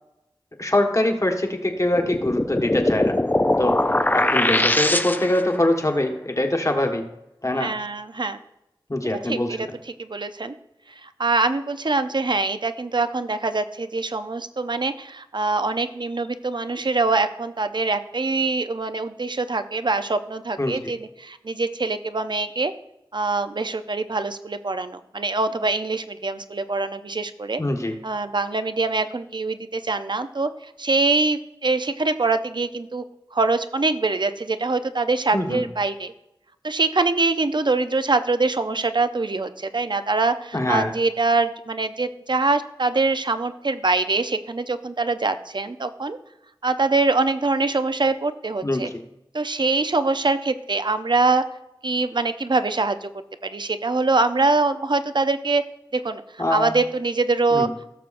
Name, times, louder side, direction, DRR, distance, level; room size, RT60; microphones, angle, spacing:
voice 1, 0.6-3.2 3.6-3.8 4.1-7.0 7.4-7.7 8.9-9.7 20.6-20.8 27.6-28.0 35.3-35.6 40.5-40.9 48.6-48.9 56.4-56.7 57.5-57.7, left 1 dB, 35° left, 3 dB, 1.5 m, -23 dB
sound 1, 1.9-5.5, left 1 dB, 20° left, 0.5 m, -21 dB
voice 2, 7.6-8.4 9.2-9.7 10.0-10.5 11.0-22.7 23.1-27.6 28.0-30.5 30.8-33.0 33.3-36.1 36.6-46.2 46.6-48.9 49.3-51.4 51.8-53.1 53.4-55.6 55.9-56.2 56.5-57.7, right 3 dB, 55° right, 10 dB, 0.6 m, -24 dB
16.5 x 6.8 x 2.6 m, 0.89 s
wide cardioid pair, 45°, 9 cm